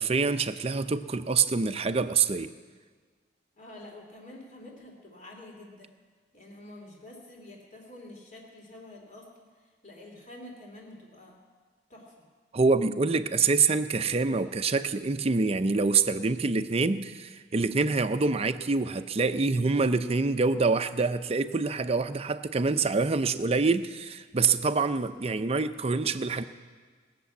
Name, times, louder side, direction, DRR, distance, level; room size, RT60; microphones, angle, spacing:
voice 1, 0.0-2.5 12.5-26.4, right 4 dB, 30° right, 10 dB, 0.5 m, -26 dB
voice 2, 3.5-5.9 6.3-11.4 11.9-12.2, left 1 dB, 40° left, 0 dB, 2.7 m, -48 dB
20.0 x 6.9 x 8.2 m, 1.5 s
head